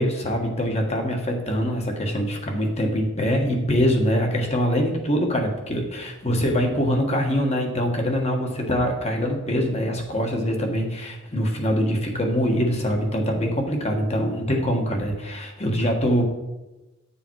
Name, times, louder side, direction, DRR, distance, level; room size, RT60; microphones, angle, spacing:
voice 1, 0.0-16.2, equal, 35° left, 2 dB, 1.5 m, -24 dB
10.5 x 7.0 x 4.7 m, 1.1 s
head